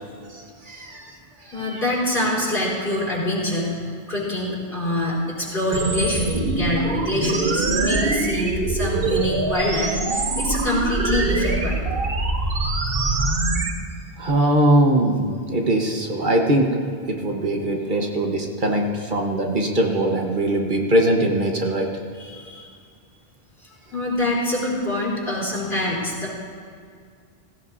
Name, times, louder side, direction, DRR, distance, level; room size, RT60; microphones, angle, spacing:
voice 1, 0.3-1.2 1.4-1.8 13.2-13.4 14.2-16.8 17.1-21.9, right 1 dB, 55° right, 1 dB, 1.3 m, -21 dB
voice 2, 1.5-11.8 22.2-22.7 23.9-26.3, left 1 dB, 55° left, -5 dB, 4.3 m, -25 dB
sound 1, 5.7-13.7, right 3 dB, 70° right, 1.2 m, -23 dB
16.5 x 16.5 x 2.7 m, 2.1 s
omnidirectional pair, 1.0 m